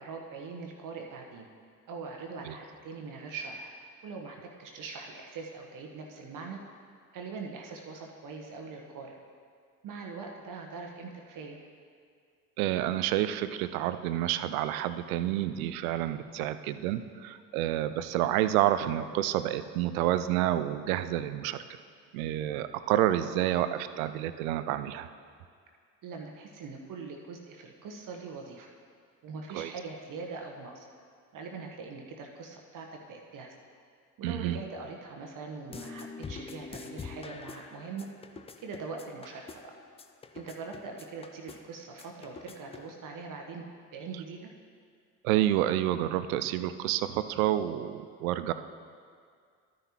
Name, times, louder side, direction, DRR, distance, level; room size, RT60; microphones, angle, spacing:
voice 1, 0.0-1.5 1.9-3.7 4.0-6.6 7.1-9.1 9.8-11.6 26.0-28.7 29.2-30.9 31.3-33.5 34.2-38.1 38.6-39.7 40.3-43.6 43.9-44.5, right 4 dB, 40° right, 2 dB, 1.1 m, -42 dB
voice 2, 12.6-21.6 22.1-25.1 29.5-29.7 34.2-34.6 45.2-48.5, right 13 dB, 65° right, 12 dB, 0.6 m, -29 dB
sound 1, 35.7-42.9, left 5 dB, 15° left, 0.4 m, -46 dB
13.0 x 10.0 x 2.9 m, 2.1 s
figure-of-eight pair, 55°, 47 cm